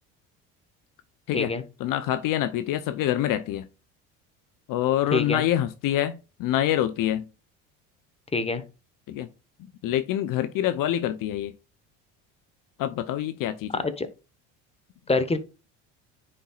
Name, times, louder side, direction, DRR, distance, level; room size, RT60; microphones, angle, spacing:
voice 1, 1.8-3.6 4.7-7.2 9.1-9.3 9.8-11.5 12.8-13.8, left 12 dB, 60° left, 0.7 m, -26 dB
voice 2, 5.1-5.4 8.3-8.6 13.7-14.1 15.1-15.4, left 3 dB, 15° left, 1.1 m, -25 dB
9.9 x 4.3 x 2.4 m
hypercardioid pair, 75°, 38 cm